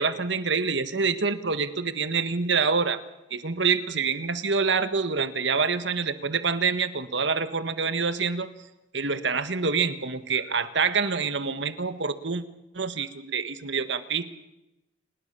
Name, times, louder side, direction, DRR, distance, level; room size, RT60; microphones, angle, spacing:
voice 1, 0.0-3.0 3.3-8.5 8.9-12.4 12.7-14.2, right 5 dB, 75° right, 11 dB, 1.5 m, -26 dB
29.0 x 20.0 x 6.9 m, 0.96 s
head